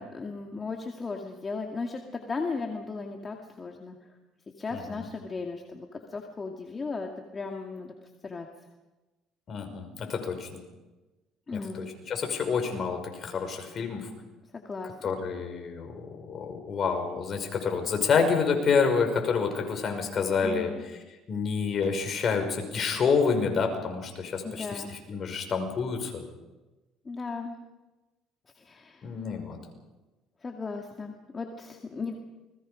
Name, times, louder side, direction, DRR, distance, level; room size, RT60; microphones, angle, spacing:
voice 1, 0.0-4.0 4.6-7.9 8.2-8.5 11.5-11.9 14.5-15.2 20.4-20.8 24.4-25.0 27.0-27.5 28.5-29.1 30.4-32.2, left 4 dB, 25° left, 2 dB, 2.2 m, -36 dB
voice 2, 4.7-5.0 9.5-10.6 11.5-14.1 15.0-20.7 21.3-26.2 29.0-29.6, left 5 dB, 45° left, 4 dB, 5.6 m, -28 dB
29.5 x 21.0 x 5.2 m, 1.1 s
cardioid pair, 105°, 0 cm